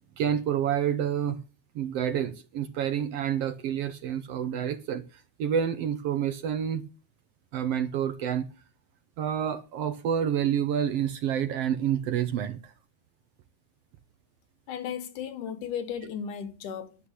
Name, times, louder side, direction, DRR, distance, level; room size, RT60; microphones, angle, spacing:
voice 1, 0.2-1.4 1.7-6.8 7.5-8.5 9.2-12.7, right 9 dB, 70° right, 1.6 m, -28 dB
voice 2, 14.7-17.0, left 8 dB, 90° left, 3.0 m, -35 dB
11.5 x 8.2 x 8.2 m
omnidirectional pair, 3.5 m